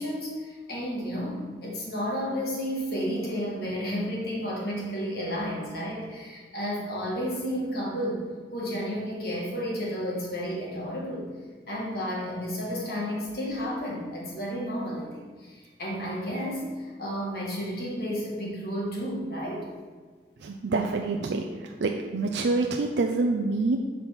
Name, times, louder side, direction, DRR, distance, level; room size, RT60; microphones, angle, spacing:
voice 1, 0.0-8.2 8.5-11.3 11.7-19.7, equal, 60° left, -3 dB, 2.0 m, -32 dB
voice 2, 20.4-21.4 21.8-23.8, right 3 dB, 80° right, 2 dB, 0.5 m, -26 dB
7.3 x 4.1 x 5.9 m, 1.5 s
head